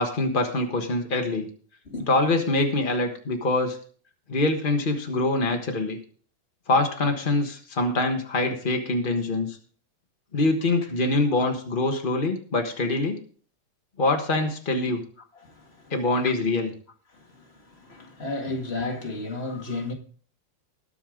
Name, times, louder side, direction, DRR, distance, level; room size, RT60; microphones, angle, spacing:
voice 1, 0.0-1.5 2.1-3.8 4.3-6.0 6.7-9.6 10.3-13.2 14.0-15.0 15.9-16.7, left 2 dB, 85° left, 0.4 m, -24 dB
voice 2, 15.3-15.9 16.2-16.3 17.1-19.9, left 2 dB, 25° left, 1.5 m, -33 dB
20.0 x 6.9 x 3.7 m
omnidirectional pair, 3.4 m